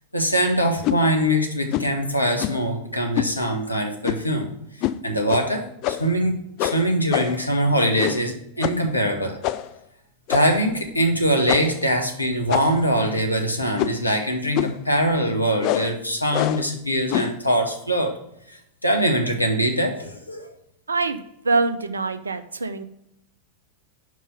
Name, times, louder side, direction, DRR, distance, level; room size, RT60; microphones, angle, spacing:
voice 1, 0.1-4.5 5.0-9.4 10.3-18.1 18.5-20.5, equal, 85° left, 3 dB, 1.0 m, -23 dB
sound 1, 0.8-1.0 1.7-2.0 2.4-2.7 3.2-3.3 4.0-4.3 4.8-5.0 5.3-5.4 5.8-6.2 6.6-7.5 8.0-8.3 8.6-8.9 9.4-9.7 10.3-10.7 11.5-11.8 12.5-12.9 13.8-14.1 14.5-14.8 15.6-15.9 16.3-16.7 17.1-17.4, left 14 dB, 40° left, 0.3 m, -26 dB
voice 2, 20.9-21.2 21.4-22.8, right 3 dB, 75° right, 11 dB, 0.5 m, -24 dB
5.5 x 4.7 x 5.5 m, 0.79 s
figure-of-eight pair, 90°, 0 cm